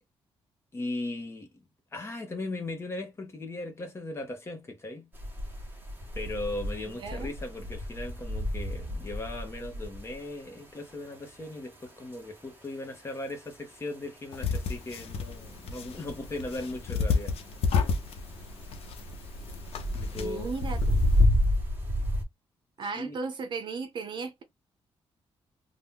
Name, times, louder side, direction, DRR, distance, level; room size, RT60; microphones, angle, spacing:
voice 1, 0.7-1.6 1.9-5.1 6.1-17.3 19.9-20.5 22.9-23.2, left 2 dB, 25° left, 1.1 m, -38 dB
sound 1, 5.1-22.2, left 1 dB, 20° right, 1.2 m, -31 dB
sound 2, 14.3-21.2, left 5 dB, 80° left, 0.8 m, -32 dB
voice 2, 20.2-21.1 22.8-24.4, right 4 dB, 55° right, 0.7 m, -36 dB
2.8 x 2.5 x 3.5 m
cardioid pair, 145°, 10 cm